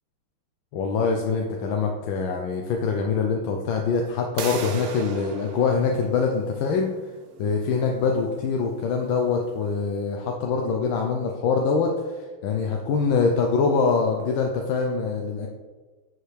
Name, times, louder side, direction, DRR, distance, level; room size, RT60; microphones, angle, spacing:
voice 1, 0.7-6.9 7.4-15.5, left 5 dB, 70° left, 2 dB, 1.4 m, -24 dB
sound 1, 4.4-10.0, right 5 dB, 65° right, 1.4 m, -39 dB
10.0 x 4.9 x 3.3 m, 1.3 s
omnidirectional pair, 2.4 m